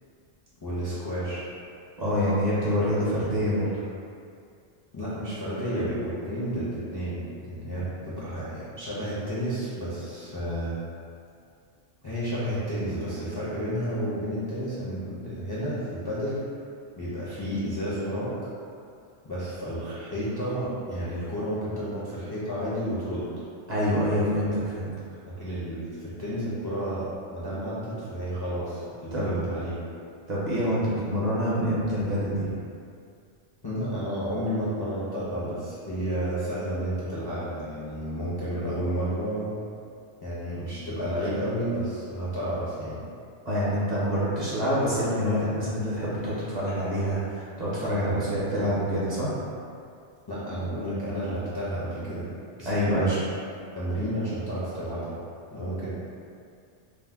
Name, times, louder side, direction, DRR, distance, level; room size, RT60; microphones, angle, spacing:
voice 1, 0.6-1.4 4.9-10.7 12.0-16.5 17.0-18.3 19.2-23.3 25.3-29.8 33.6-39.5 40.2-43.0 47.8-48.3 50.3-52.3 52.6-53.2 53.7-55.2 55.5-55.9, equal, 40° left, -11 dB, 0.3 m, -31 dB
voice 2, 2.0-3.7 23.7-24.9 29.1-29.4 30.3-32.5 43.5-49.3 52.7-53.1, equal, 45° right, -9 dB, 0.6 m, -26 dB
2.6 x 2.0 x 3.3 m, 2.4 s
omnidirectional pair, 1.2 m